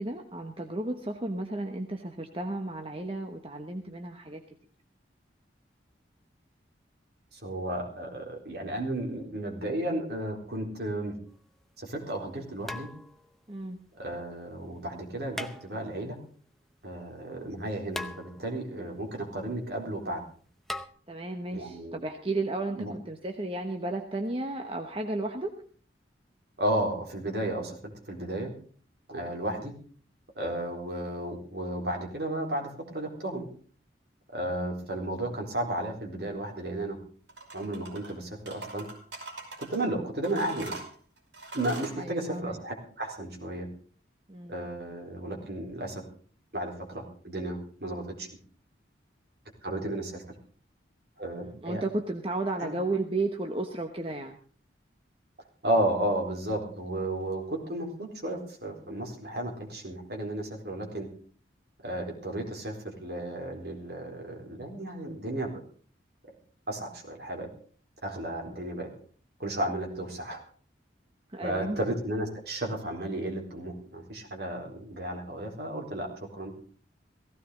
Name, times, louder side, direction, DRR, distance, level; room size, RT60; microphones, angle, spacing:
voice 1, 0.0-4.4 13.5-13.8 21.1-25.5 34.4-34.7 42.0-42.6 44.3-44.6 51.4-54.4 68.5-68.6 71.3-71.8, right 2 dB, 30° right, 4 dB, 1.2 m, -33 dB
voice 2, 7.3-11.2 11.8-12.9 14.0-16.2 16.8-20.2 21.5-22.0 22.8-22.9 26.6-28.5 29.1-29.7 30.4-33.5 34.3-37.0 37.5-38.9 39.6-40.7 41.5-43.7 44.5-46.0 46.5-48.3 49.6-50.2 51.2-51.8 52.6-52.8 55.6-61.1 61.8-65.5 66.7-67.5 68.0-68.9 69.4-70.4 71.4-76.5, right 1 dB, 60° right, 0 dB, 4.2 m, -33 dB
sound 1, 11.3-11.4 12.7-13.4 15.3-16.1 17.9-18.7 20.7-20.9, left 1 dB, ahead, 0.7 m, -39 dB
sound 2, 37.3-38.1 38.5-39.8 40.2-42.0, right 3 dB, 75° right, 5.5 m, -42 dB
17.0 x 16.0 x 3.9 m, 0.43 s
head